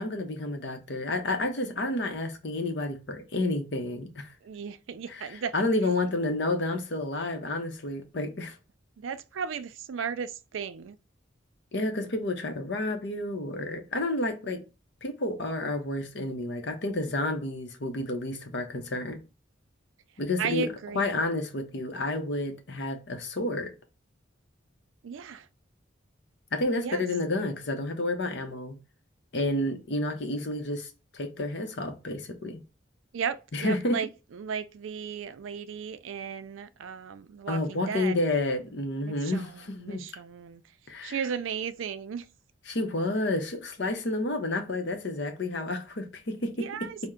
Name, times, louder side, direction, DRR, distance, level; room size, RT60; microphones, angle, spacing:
voice 1, 0.0-4.3 5.1-8.5 11.7-14.6 15.0-19.2 20.2-20.7 20.9-23.7 26.5-28.8 29.3-30.9 31.1-32.6 33.5-34.0 37.5-40.0 40.9-41.2 42.7-46.9, left 2 dB, 60° left, 0.7 m, -30 dB
voice 2, 4.4-5.5 9.0-11.0 20.4-21.1 25.0-25.5 26.8-27.0 33.1-38.2 39.0-40.6 41.0-42.3 46.6-47.0, right 6 dB, 85° right, 0.4 m, -35 dB
4.3 x 2.1 x 3.6 m
head